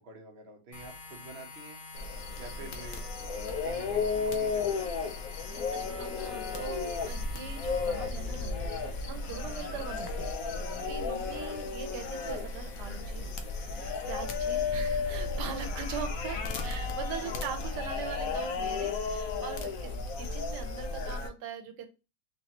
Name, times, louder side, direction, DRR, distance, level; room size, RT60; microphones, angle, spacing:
voice 1, 0.0-1.8 2.4-3.0 3.6-5.2 11.0-11.4 17.2-17.4, right 3 dB, 45° right, 1 dB, 1.0 m, -48 dB
sound 1, 0.7-16.0, left 3 dB, 90° left, 1.7 m, -49 dB
sound 2, 1.9-21.3, left 4 dB, 65° left, 0.9 m, -34 dB
voice 2, 5.5-10.4 10.8-13.3 13.8-21.9, right 7 dB, 80° right, 6 dB, 1.3 m, -42 dB
4.0 x 2.7 x 2.8 m, 0.29 s
omnidirectional pair, 1.7 m